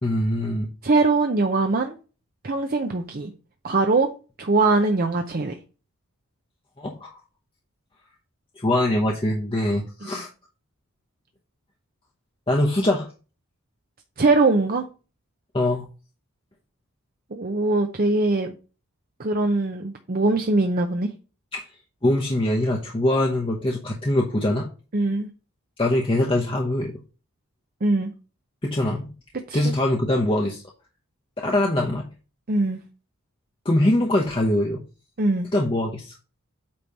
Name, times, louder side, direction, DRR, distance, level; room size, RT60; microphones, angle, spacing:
voice 1, 0.0-0.7 6.8-7.2 8.6-10.3 12.5-13.1 15.5-15.8 21.5-21.7 22.0-24.7 25.8-27.0 28.6-29.1 29.5-30.6 31.4-32.1 33.6-34.8 35.5-36.2, left 1 dB, 25° left, 0.9 m, -23 dB
voice 2, 0.8-2.0 2.4-3.3 3.6-4.1 4.4-5.5 10.0-10.2 14.2-14.8 17.3-18.5 19.2-21.1 24.9-25.3 27.8-28.1 29.5-29.7 32.5-32.8 35.2-35.5, right 3 dB, 40° right, 0.7 m, -22 dB
8.5 x 3.1 x 5.4 m
head